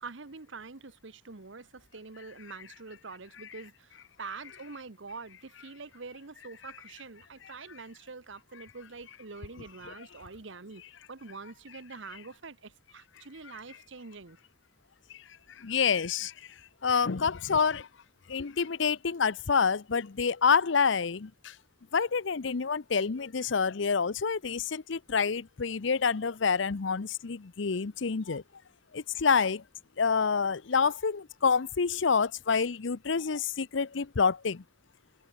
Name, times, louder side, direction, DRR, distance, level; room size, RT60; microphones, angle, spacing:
voice 1, 0.0-10.8 11.1-14.4, right 4 dB, 70° right, 1.2 m, -45 dB
voice 2, 15.6-16.3 16.8-17.9 18.3-21.5 21.9-28.4 28.9-29.6 30.0-34.6, left 5 dB, 70° left, 0.7 m, -27 dB
head